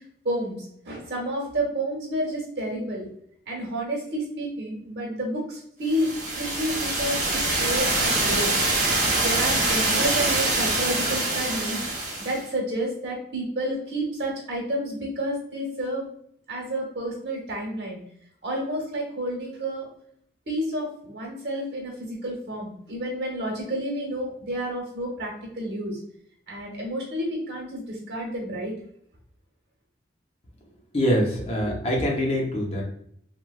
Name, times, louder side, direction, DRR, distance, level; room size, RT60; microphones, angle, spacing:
voice 1, 0.2-0.6 0.8-3.1 3.5-6.1 6.4-8.5 9.2-11.8 12.2-16.1 16.5-18.0 18.4-19.9 20.5-26.0 26.5-28.7, right 1 dB, 70° right, -2 dB, 1.1 m, -30 dB
sound 1, 5.9-12.4, right 2 dB, 45° right, 0.9 m, -24 dB
voice 2, 30.9-32.8, equal, 35° left, -2 dB, 0.7 m, -24 dB
3.2 x 2.2 x 2.5 m, 0.67 s
head